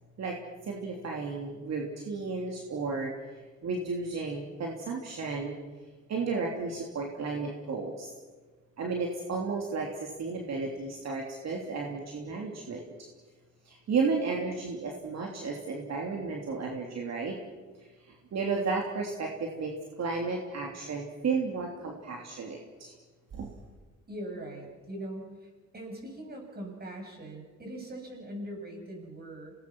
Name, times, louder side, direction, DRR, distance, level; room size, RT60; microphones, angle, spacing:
voice 1, 0.6-3.1 3.6-5.6 6.1-8.1 8.8-12.9 13.6-17.4 18.1-19.7 20.0-22.9 23.3-23.5, right 4 dB, 60° right, 0 dB, 3.3 m, -33 dB
voice 2, 24.1-29.5, right 1 dB, 30° right, 1 dB, 7.8 m, -41 dB
27.0 x 19.5 x 6.3 m, 1.3 s
cardioid pair, 90°, 30 cm